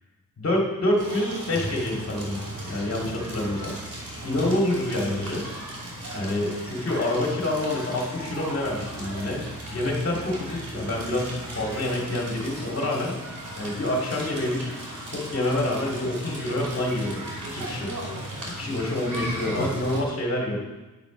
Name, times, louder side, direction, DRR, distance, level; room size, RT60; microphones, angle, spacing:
voice 1, 0.4-3.7 4.2-5.4 6.1-9.4 9.7-13.1 13.6-14.7 15.1-17.9 18.4-20.6, left 1 dB, 40° left, -2 dB, 2.3 m, -27 dB
Crackle, 1.0-20.0, right 1 dB, 85° right, 2.6 m, -36 dB
9.5 x 5.1 x 5.0 m, 1.2 s
wide cardioid pair, 105°, 33 cm